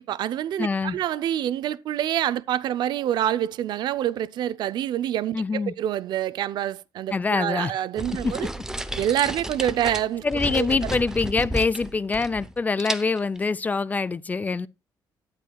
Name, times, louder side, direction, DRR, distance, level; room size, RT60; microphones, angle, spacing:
voice 1, 0.0-8.5 9.0-10.2 10.5-10.9, right 11 dB, 70° right, 0.5 m, -26 dB
voice 2, 0.6-1.0 5.3-5.7 7.1-7.7 8.2-8.3 10.2-14.7, left 4 dB, 20° left, 0.4 m, -25 dB
sound 1, 8.0-12.5 12.8-13.4, right 1 dB, 5° right, 0.7 m, -32 dB
12.0 x 9.8 x 2.3 m
cardioid pair, 135°, 8 cm